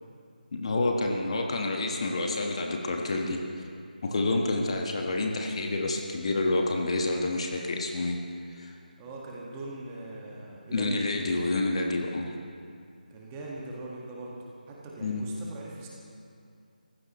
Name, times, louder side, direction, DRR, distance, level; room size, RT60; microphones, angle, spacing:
voice 1, 0.5-3.4 4.0-8.2 8.6-8.8 10.7-12.3 15.0-15.2, left 2 dB, 40° left, 1 dB, 1.4 m, -28 dB
voice 2, 9.0-11.1 13.1-14.4 14.7-15.9, right 2 dB, 15° right, -3 dB, 1.7 m, -41 dB
23.0 x 15.5 x 3.1 m, 2.4 s
figure-of-eight pair, 160°, 5 cm